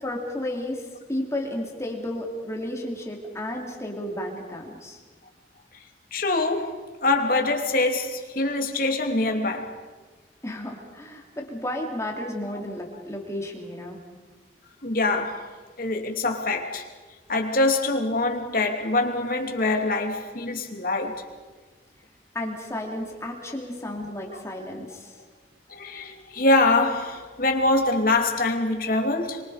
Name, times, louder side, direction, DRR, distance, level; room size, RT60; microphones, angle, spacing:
voice 1, 0.0-5.0 10.4-14.0 22.3-25.1, left 1 dB, 15° left, 3.2 m, -33 dB
voice 2, 6.1-9.8 14.8-15.5 15.8-16.8 17.3-21.2 24.3-24.4 25.7-29.4, left 2 dB, 55° left, 2.8 m, -24 dB
28.0 x 24.5 x 5.1 m
head